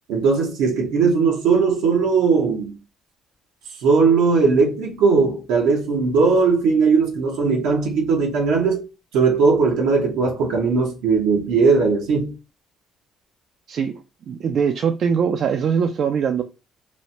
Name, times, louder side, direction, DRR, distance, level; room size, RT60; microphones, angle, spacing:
voice 1, 0.1-2.7 3.8-8.9 9.1-12.3, right 4 dB, 90° right, 0.9 m, -18 dB
voice 2, 13.7-14.0 14.3-16.4, right 6 dB, 50° right, 0.3 m, -21 dB
3.1 x 2.1 x 2.6 m
cardioid pair, 125°, 0 cm